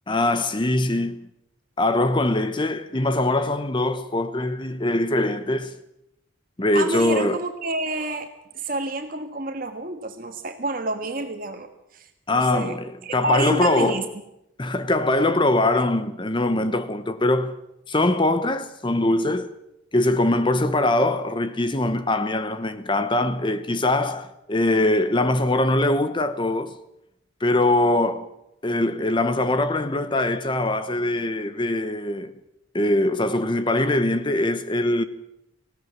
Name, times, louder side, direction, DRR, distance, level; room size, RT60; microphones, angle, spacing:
voice 1, 0.1-1.3 1.8-5.8 6.6-7.4 12.3-12.8 13.1-14.1 14.6-17.6 17.9-19.5 19.9-26.7 27.4-28.3 28.6-32.3 32.7-35.0, left 2 dB, 25° left, 0.9 m, -22 dB
voice 2, 6.7-8.3 8.5-12.1 12.3-12.8 13.0-14.1, right 2 dB, 45° right, 1.6 m, -29 dB
19.5 x 16.5 x 9.3 m
head